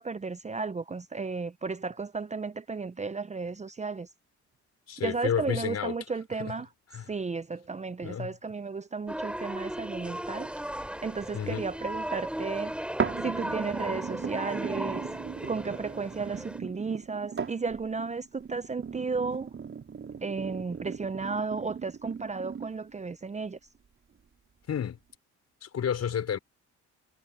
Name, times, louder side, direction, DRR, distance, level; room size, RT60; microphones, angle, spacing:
voice 1, 0.0-4.1 5.0-6.7 7.1-10.5 11.0-12.8 13.2-15.1 15.5-19.5 20.2-23.6, right 4 dB, 25° right, 0.7 m, -34 dB
voice 2, 4.9-5.9 6.4-6.5 6.9-7.1 8.0-8.3 11.3-11.6 24.7-25.0 25.6-26.4, left 8 dB, 55° left, 5.6 m, -31 dB
sound 1, 9.1-16.6, equal, 5° right, 4.4 m, -36 dB
sound 2, 13.0-23.0 23.6-23.7, right 6 dB, 40° right, 4.6 m, -37 dB
cardioid pair, 90°, 30 cm